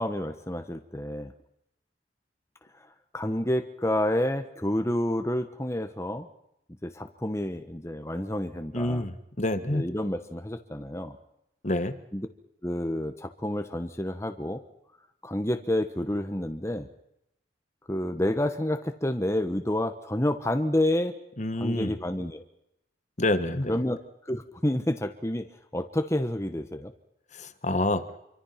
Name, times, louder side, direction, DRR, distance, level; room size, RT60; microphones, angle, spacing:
voice 1, 0.0-1.3 2.7-2.9 3.1-6.3 6.8-9.0 9.7-11.2 12.1-12.3 12.6-14.6 15.2-16.9 17.9-21.2 21.6-22.4 23.7-24.0 24.2-25.5 25.7-26.9, left 1 dB, 15° left, 7 dB, 1.2 m, -29 dB
voice 2, 8.7-9.9 11.6-12.0 21.4-22.0 23.2-23.8 27.3-28.1, left 1 dB, 40° left, 11 dB, 1.4 m, -27 dB
27.0 x 24.0 x 5.9 m, 0.82 s
head